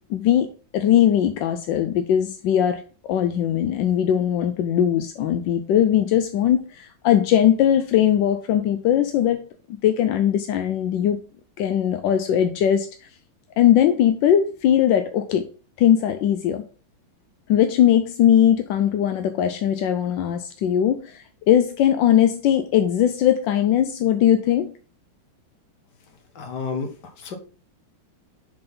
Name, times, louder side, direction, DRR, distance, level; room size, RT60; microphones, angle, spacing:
voice 1, 0.1-2.8 3.1-9.4 9.8-11.2 11.6-13.1 13.6-15.5 15.8-16.6 17.5-24.7, left 10 dB, 75° left, 8 dB, 1.2 m, -20 dB
voice 2, 26.3-26.9 27.2-27.4, left 5 dB, 60° left, 6 dB, 1.7 m, -30 dB
6.8 x 4.0 x 5.3 m, 0.39 s
omnidirectional pair, 2.3 m